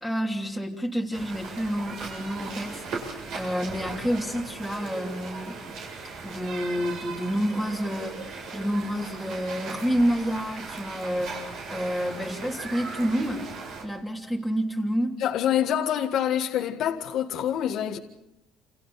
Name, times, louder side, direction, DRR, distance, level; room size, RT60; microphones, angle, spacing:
voice 1, 0.0-5.6 6.2-13.5 13.8-15.2, equal, 5° right, 3.0 m, -29 dB
sound 1, 1.1-13.8, right 4 dB, 60° right, 7.4 m, -38 dB
voice 2, 15.2-18.0, left 10 dB, 55° left, 1.6 m, -26 dB
28.5 x 28.5 x 4.2 m
cardioid pair, 130°, 0 cm